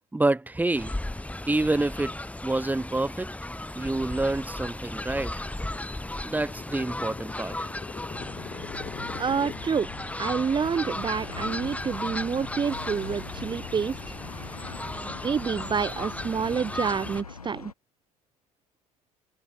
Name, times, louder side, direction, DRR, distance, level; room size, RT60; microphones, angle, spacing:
voice 1, 0.1-1.0 1.5-3.3 3.7-5.3 6.2-7.5, right 2 dB, 10° right, 1.5 m, -27 dB
Fowl, 0.7-17.2, left 1 dB, 5° left, 4.7 m, -36 dB
sound 1, 4.4-9.6, left 6 dB, 30° left, 2.9 m, -44 dB
sound 2, 8.1-17.7, left 5 dB, 85° left, 2.4 m, -43 dB
voice 2, 9.2-9.9 10.2-14.0 14.7-17.7, right 6 dB, 25° right, 1.1 m, -28 dB
figure-of-eight pair, 60°, 19 cm